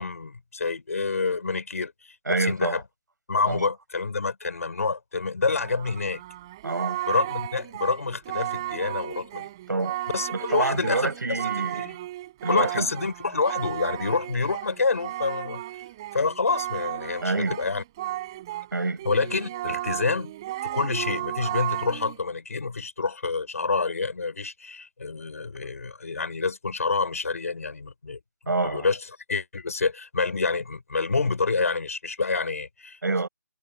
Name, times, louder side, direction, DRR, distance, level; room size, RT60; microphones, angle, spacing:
voice 1, 0.0-2.8 3.3-6.2 7.1-9.5 10.1-12.0 12.5-15.6 16.1-17.8 19.0-20.3 20.6-29.0 29.3-33.0, left 4 dB, 50° left, 4.6 m, -28 dB
voice 2, 2.3-2.8 3.5-3.7 6.6-7.0 9.7-10.0 10.3-11.9 12.4-12.9 17.2-17.6 18.7-19.0 28.5-28.9 33.0-33.3, right 3 dB, 70° right, 7.1 m, -27 dB
Singing, 5.6-18.7 19.0-22.2, right 15 dB, 15° right, 3.5 m, -34 dB
figure-of-eight pair, 180°, 10 cm